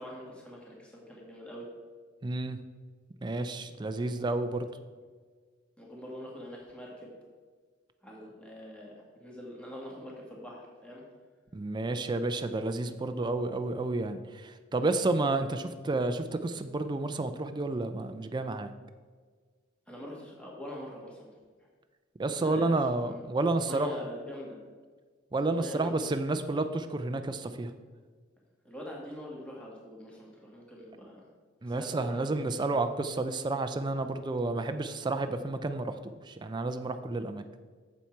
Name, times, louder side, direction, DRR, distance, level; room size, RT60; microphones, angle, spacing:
voice 1, 0.0-1.7 5.8-7.1 8.0-11.0 19.9-21.3 22.2-23.2 23.6-24.6 25.5-26.1 28.6-31.2 31.6-32.7, equal, 5° left, -3 dB, 1.7 m, -44 dB
voice 2, 2.2-2.6 3.2-4.7 11.5-18.7 22.2-24.0 25.3-27.7 31.6-37.4, right 2 dB, 20° right, 8 dB, 0.4 m, -31 dB
7.2 x 7.2 x 4.5 m, 1.5 s
head